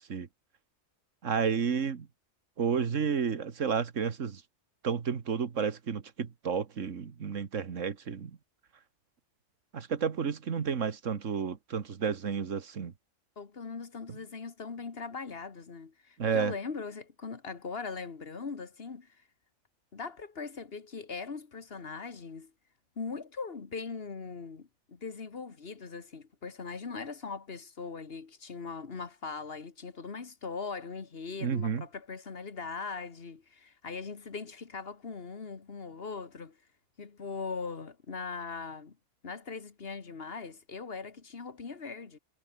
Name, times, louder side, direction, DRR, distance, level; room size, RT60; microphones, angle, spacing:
voice 1, 1.2-2.1 2.6-4.4 4.8-8.3 9.7-12.9 16.2-16.5 31.4-31.8, right 6 dB, 90° right, 1.8 m, -31 dB
voice 2, 13.4-19.2 19.9-22.5 23.0-36.6 37.0-39.0 39.2-42.2, left 4 dB, 55° left, 1.8 m, -40 dB
omnidirectional pair, 1.3 m